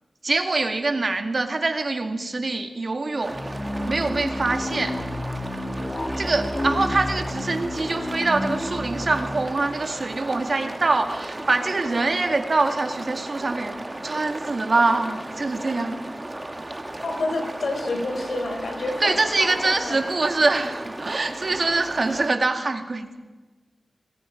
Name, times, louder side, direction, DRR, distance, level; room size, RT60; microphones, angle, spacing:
voice 1, 0.2-3.4 3.9-5.0 6.2-13.7 14.0-16.0 19.0-23.2, right 3 dB, 50° right, 6 dB, 2.2 m, -24 dB
sound 1, 3.2-22.3, right 1 dB, 25° right, 1.8 m, -35 dB
sound 2, 3.3-10.5, left 1 dB, 50° left, 4.2 m, -31 dB
voice 2, 17.0-20.0 22.0-22.2, left 2 dB, 75° left, 4 dB, 4.2 m, -29 dB
26.0 x 20.5 x 5.2 m, 1.2 s
wide cardioid pair, 90°, 0 cm